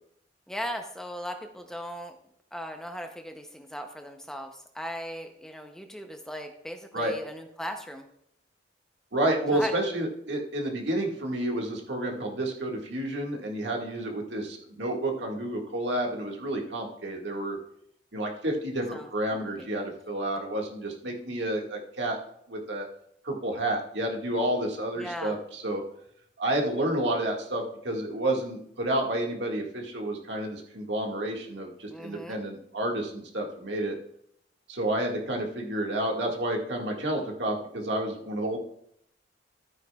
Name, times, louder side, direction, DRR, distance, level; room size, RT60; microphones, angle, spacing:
voice 1, 0.5-2.2 2.5-8.1 9.5-9.7 18.9-19.7 25.0-25.4 31.9-32.4, equal, 5° left, 5 dB, 0.7 m, -38 dB
voice 2, 9.1-17.6 18.1-22.2 22.5-22.9 23.2-25.8 26.4-34.0 34.7-38.6, right 1 dB, 70° right, 1 dB, 1.9 m, -30 dB
13.5 x 9.1 x 2.4 m, 0.70 s
head